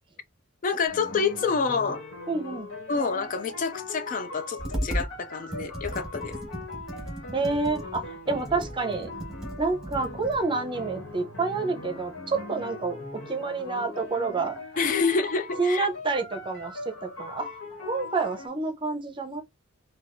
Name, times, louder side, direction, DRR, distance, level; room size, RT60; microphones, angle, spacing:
voice 1, 0.6-2.0 2.9-6.4 14.8-15.9, left 5 dB, 40° left, 0.4 m, -27 dB
sound 1, 0.9-18.5, left 2 dB, 85° left, 1.3 m, -40 dB
voice 2, 2.3-2.7 7.3-9.1 9.6-14.6 15.6-17.5 17.8-19.4, right 3 dB, 25° right, 0.6 m, -28 dB
Computer keyboard, 4.6-5.1 5.5-10.4, right 1 dB, 5° right, 1.2 m, -35 dB
4.4 x 2.3 x 2.6 m
head